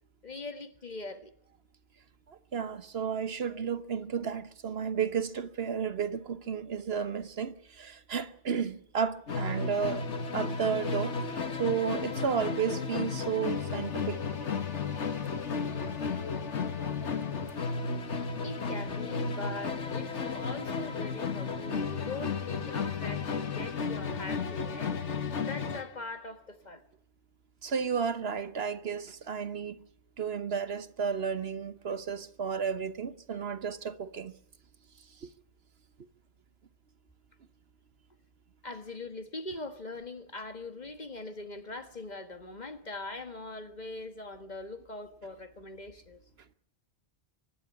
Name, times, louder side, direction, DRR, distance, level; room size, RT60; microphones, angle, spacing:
voice 1, 0.2-1.3 18.4-26.8 38.6-46.2, left 2 dB, 40° left, 1.7 m, -42 dB
voice 2, 2.3-10.0 10.3-11.1 11.6-14.2 15.6-15.7 27.6-29.8 30.2-34.3 35.2-35.3, right 6 dB, 65° right, 1.2 m, -32 dB
Musical instrument, 9.3-25.9, left 5 dB, 85° left, 1.7 m, -33 dB
24.0 x 11.5 x 9.7 m
omnidirectional pair, 1.2 m